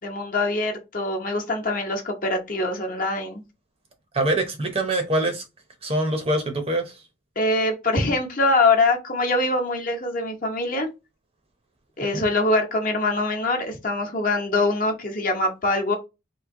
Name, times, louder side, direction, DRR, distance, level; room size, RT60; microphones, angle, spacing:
voice 1, 0.0-3.4 7.4-10.9 12.0-16.0, left 2 dB, 45° left, 0.9 m, -23 dB
voice 2, 4.1-5.4 5.8-6.9 12.1-12.2, right 1 dB, 30° right, 0.7 m, -24 dB
3.1 x 2.8 x 3.6 m
head